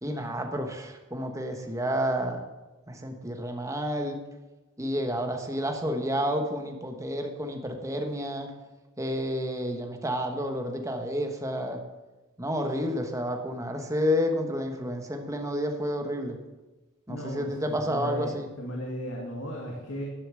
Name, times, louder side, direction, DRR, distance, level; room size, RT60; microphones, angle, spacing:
voice 1, 0.0-2.5 2.9-4.2 4.8-8.5 9.0-11.8 12.4-16.4 17.1-18.5, equal, 15° right, 4 dB, 1.2 m, -30 dB
voice 2, 17.1-20.0, equal, 75° left, -1 dB, 2.1 m, -36 dB
11.0 x 6.9 x 7.5 m, 1.1 s
head